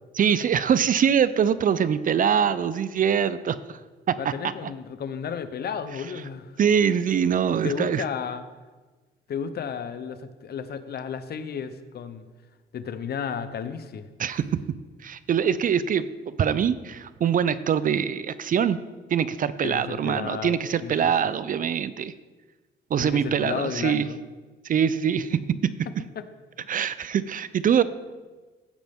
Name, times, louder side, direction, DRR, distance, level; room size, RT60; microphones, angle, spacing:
voice 1, 0.2-3.8 4.2-4.3 6.6-8.0 14.2-14.6 15.0-18.8 19.1-22.1 22.9-24.1 24.6-25.7 26.7-27.8, right 8 dB, 45° right, 15 dB, 0.4 m, -23 dB
voice 2, 4.2-6.5 7.6-8.4 9.3-12.3 12.7-14.1 19.6-20.9 23.0-24.2 25.3-25.4 26.2-26.3 26.6-26.7, left 7 dB, 55° left, 11 dB, 0.7 m, -33 dB
15.0 x 5.1 x 3.6 m, 1.3 s
cardioid pair, 90°, 20 cm